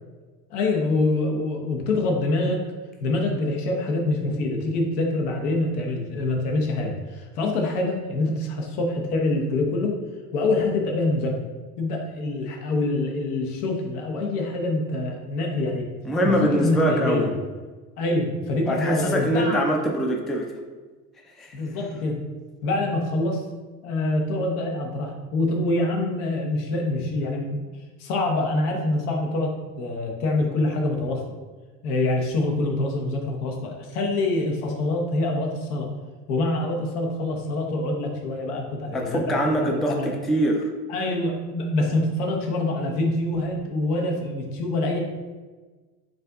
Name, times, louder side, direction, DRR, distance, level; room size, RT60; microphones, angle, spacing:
voice 1, 0.5-2.6 3.0-9.9 10.3-11.4 11.8-15.9 16.2-17.3 18.0-19.7 21.5-22.2 22.6-23.4 23.8-27.6 28.0-31.2 31.8-35.9 36.3-40.1 40.9-45.0, left 2 dB, 70° left, 1 dB, 1.0 m, -25 dB
voice 2, 16.1-17.3 18.7-20.5 21.4-21.6 38.9-40.7, right 1 dB, ahead, 1 dB, 0.3 m, -23 dB
7.5 x 2.6 x 2.3 m, 1.3 s
hypercardioid pair, 70°, 46 cm